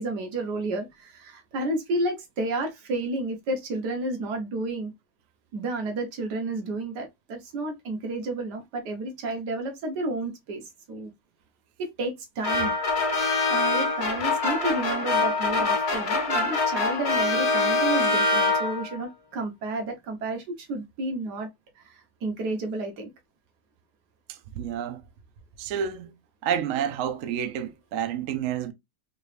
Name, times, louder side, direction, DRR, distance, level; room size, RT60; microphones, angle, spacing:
voice 1, 0.0-4.9 5.5-11.1 11.8-12.7 13.5-21.5 21.8-23.1, right 2 dB, 85° right, 1.6 m, -31 dB
sound 1, 12.4-19.0, left 3 dB, 45° left, 1.1 m, -24 dB
voice 2, 24.3-25.0 25.6-26.1 26.4-28.7, right 9 dB, 65° right, 0.8 m, -29 dB
3.8 x 3.0 x 3.2 m
omnidirectional pair, 1.7 m